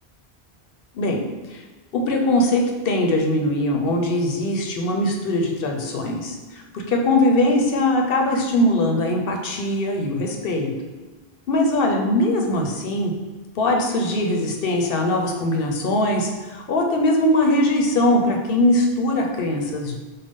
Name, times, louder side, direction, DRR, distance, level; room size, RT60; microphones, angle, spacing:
voice 1, 1.9-10.7 11.5-13.1 13.6-20.0, left 1 dB, 65° left, 1 dB, 0.8 m, -21 dB
5.2 x 2.2 x 3.6 m, 1.3 s
omnidirectional pair, 1.1 m